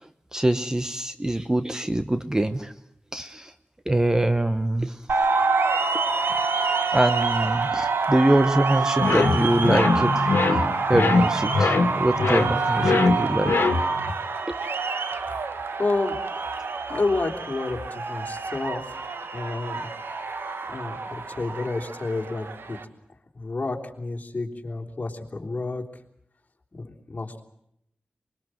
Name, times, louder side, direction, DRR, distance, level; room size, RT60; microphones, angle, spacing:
voice 1, 0.3-2.7 3.1-3.5 3.9-5.0 6.9-10.3 10.9-13.5, right 1 dB, 15° right, 10 dB, 1.1 m, -24 dB
sound 1, 5.1-22.9, right 4 dB, 85° right, 1.6 m, -27 dB
sound 2, 9.0-14.1, left 4 dB, 75° left, 2.0 m, -23 dB
voice 2, 15.8-16.2 16.9-19.0 19.3-19.9 20.7-22.8 23.3-25.8 26.7-27.4, left 3 dB, 45° left, 2 dB, 3.4 m, -30 dB
24.0 x 22.5 x 7.8 m, 0.73 s
wide cardioid pair, 75°, 4 cm